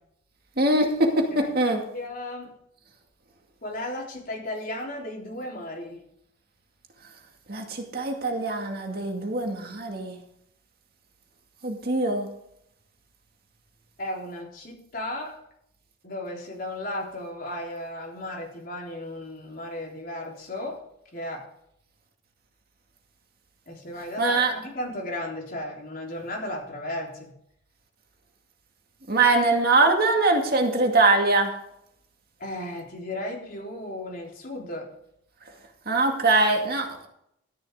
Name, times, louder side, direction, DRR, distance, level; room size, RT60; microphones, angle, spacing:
voice 1, 0.6-1.8 7.5-10.2 11.6-12.3 24.2-24.5 29.1-31.5 35.9-37.1, right 2 dB, 50° right, 2 dB, 2.2 m, -22 dB
voice 2, 1.9-2.5 3.6-6.0 14.0-15.4 16.0-20.8 21.1-21.5 23.7-27.3 32.4-34.9, left 1 dB, 45° left, -1 dB, 3.7 m, -35 dB
13.5 x 11.0 x 3.7 m, 0.74 s
head